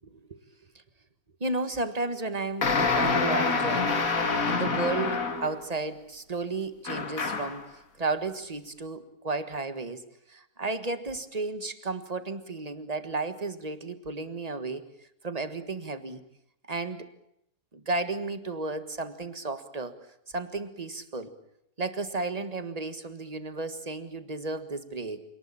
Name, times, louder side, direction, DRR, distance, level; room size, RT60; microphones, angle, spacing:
voice 1, 1.4-10.0 10.3-14.8 15.2-16.2 16.7-17.1 17.7-20.0 20.3-21.3 21.8-25.2, right 3 dB, 25° right, 10 dB, 1.6 m, -33 dB
sound 1, 2.6-5.6 6.8-7.6, left 4 dB, 60° left, 2.4 m, -27 dB
27.0 x 19.5 x 8.6 m, 0.76 s
omnidirectional pair, 1.6 m